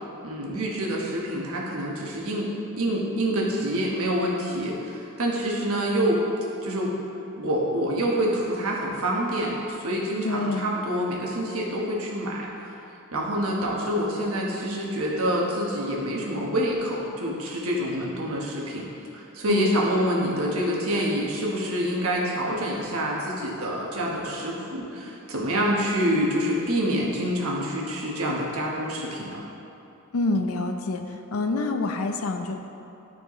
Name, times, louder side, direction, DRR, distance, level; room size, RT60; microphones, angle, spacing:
voice 1, 0.2-2.5 2.8-6.2 6.6-7.0 7.4-12.5 13.1-18.8 19.1-29.4, equal, 70° right, -3 dB, 1.3 m, -27 dB
voice 2, 10.2-10.7 19.5-19.8 30.1-31.0 31.3-32.6, left 3 dB, 75° left, 6 dB, 0.5 m, -26 dB
12.0 x 4.6 x 3.1 m, 2.9 s
head